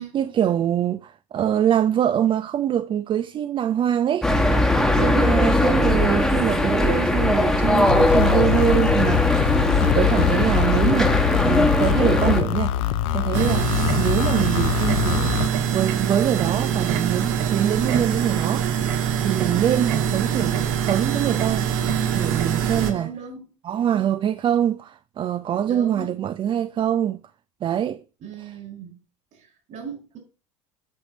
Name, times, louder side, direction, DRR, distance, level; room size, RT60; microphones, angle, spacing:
voice 1, 0.0-4.3 5.0-9.5 9.8-15.4 15.7-18.6 19.0-21.7 22.1-23.1 23.6-27.2 27.6-28.0 28.4-28.5, right 10 dB, 30° right, 0.4 m, -24 dB
sound 1, 4.2-12.4, left 1 dB, 5° left, 1.2 m, -20 dB
sound 2, 7.9-15.5, left 11 dB, 60° left, 0.6 m, -24 dB
sound 3, 13.3-22.9, right 8 dB, 60° right, 1.5 m, -24 dB
voice 2, 22.5-23.5 25.6-26.2 28.2-29.0 29.3-30.2, right 6 dB, 45° right, 4.9 m, -38 dB
8.5 x 6.5 x 3.0 m
figure-of-eight pair, 75°, 18 cm